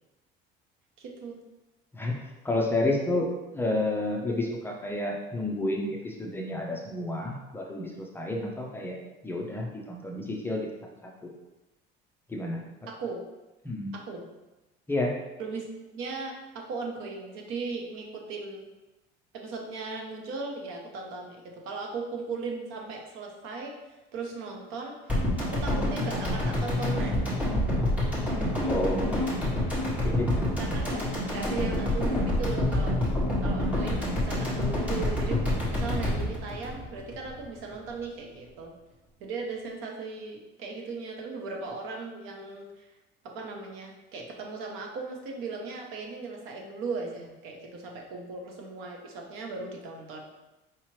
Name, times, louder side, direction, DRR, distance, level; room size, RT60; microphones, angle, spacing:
voice 1, 1.0-1.4 12.9-13.2 13.9-14.2 15.4-18.7 19.3-27.2 30.6-31.0 31.3-33.0 33.4-35.4 35.7-38.7 39.2-42.9 43.2-50.2, right 4 dB, 75° right, 1 dB, 0.8 m, -37 dB
voice 2, 1.9-9.0 9.2-10.7 11.0-11.3 12.3-12.6 13.6-13.9 14.9-15.1 28.7-29.0 30.0-30.3, left 1 dB, 10° left, -1 dB, 0.4 m, -30 dB
sound 1, 25.1-37.4 37.7-37.8, left 1 dB, 5° right, 1.1 m, -27 dB
4.8 x 2.9 x 3.1 m, 1.1 s
cardioid pair, 145°, 21 cm